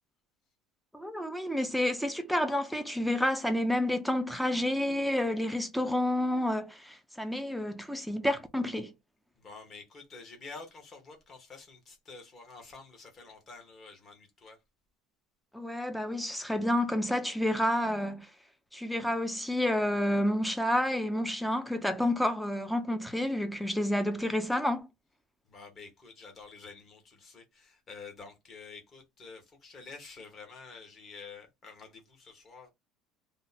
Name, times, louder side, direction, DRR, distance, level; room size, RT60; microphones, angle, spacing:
voice 1, 0.9-8.9 15.5-18.3 18.7-24.9, left 1 dB, ahead, 0.4 m, -29 dB
voice 2, 9.4-14.6 25.5-32.7, left 4 dB, 25° left, 1.0 m, -49 dB
2.7 x 2.1 x 3.9 m
cardioid pair, 170°, 0 cm